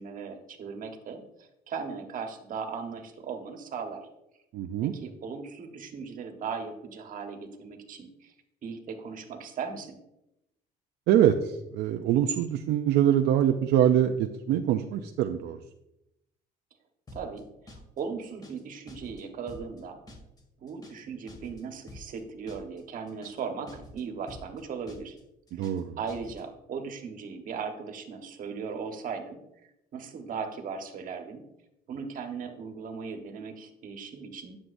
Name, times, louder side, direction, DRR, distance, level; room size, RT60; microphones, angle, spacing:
voice 1, 0.0-4.1 4.8-8.3 8.6-10.0 17.1-20.0 20.6-25.2 25.6-29.4 29.9-31.5 31.9-34.6, right 5 dB, 55° right, 5 dB, 1.3 m, -38 dB
voice 2, 4.5-4.9 11.1-15.6 25.5-26.0, right 10 dB, 75° right, 6 dB, 0.5 m, -24 dB
sound 1, 17.1-17.4 17.7-18.0 18.3-18.6 18.9-19.2 19.5-19.8 20.1-20.4 20.7-21.0 21.3-21.6 21.9-22.2 22.5-22.8 23.1-23.4 23.7-24.0 24.3-24.6 24.9-25.2 25.5-25.8 26.1-26.4, left 1 dB, 25° left, 1.8 m, -47 dB
9.8 x 7.4 x 2.6 m, 0.86 s
cardioid pair, 110°, 17 cm